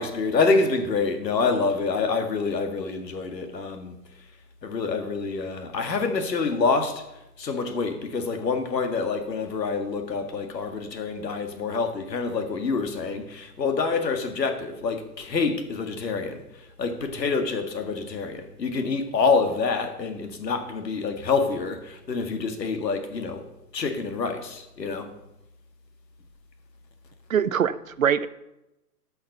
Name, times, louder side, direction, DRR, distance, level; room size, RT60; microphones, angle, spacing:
voice 1, 0.0-3.9 4.6-7.0 7.4-16.4 16.8-23.4 23.7-25.1, left 4 dB, 80° left, 1.9 m, -26 dB
voice 2, 27.3-28.3, right 8 dB, 55° right, 0.5 m, -23 dB
11.0 x 5.8 x 6.6 m
hypercardioid pair, 170°, 49 cm